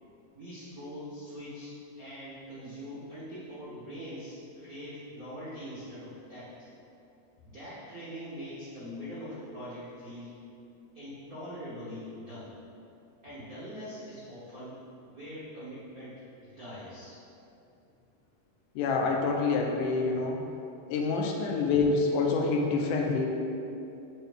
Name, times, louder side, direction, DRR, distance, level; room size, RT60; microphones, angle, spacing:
voice 1, 0.3-6.7 7.5-10.4 10.9-12.5 13.2-17.2, equal, 75° right, -11 dB, 0.8 m, -43 dB
voice 2, 18.8-20.4 20.9-23.3, left 4 dB, 90° left, 1 dB, 2.2 m, -27 dB
8.0 x 4.5 x 3.5 m, 2.7 s
omnidirectional pair, 3.6 m